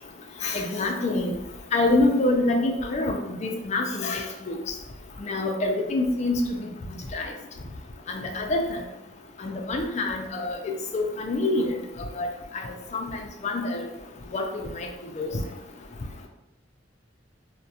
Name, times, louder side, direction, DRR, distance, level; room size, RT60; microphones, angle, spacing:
voice 1, 0.4-1.3 1.7-4.6 5.3-6.7 7.1-7.3 8.1-8.6 9.4-11.8 12.2-12.3 12.9-13.1 13.4-13.8 14.3-14.4 14.8-14.9 15.2-15.3, left 2 dB, 40° left, 3 dB, 0.3 m, -26 dB
2.3 x 2.1 x 2.7 m, 0.96 s
head